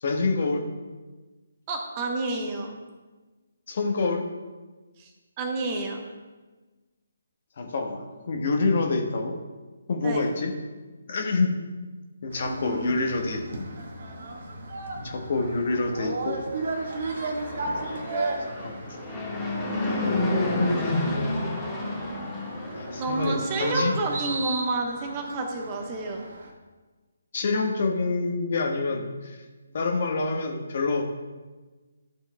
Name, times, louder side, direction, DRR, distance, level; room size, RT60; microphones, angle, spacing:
voice 1, 0.0-0.6 3.7-4.2 7.6-9.3 9.9-10.5 11.1-11.5 12.2-13.7 15.0-16.4 17.6-18.0 18.4-18.9 19.8-21.3 22.7-23.9 27.3-29.4 29.7-31.0, left 3 dB, 45° left, 2 dB, 1.2 m, -27 dB
voice 2, 1.7-2.7 5.0-5.1 5.4-6.0 10.0-10.2 12.4-13.4 23.0-26.2, right 2 dB, 25° right, 2 dB, 1.0 m, -30 dB
sound 1, 12.3-26.5, right 3 dB, 50° right, 1.5 m, -36 dB
Fixed-wing aircraft airplane, 16.5-23.9, left 1 dB, 15° left, 1.5 m, -30 dB
14.0 x 7.0 x 2.2 m, 1.3 s
figure-of-eight pair, 145°, 0 cm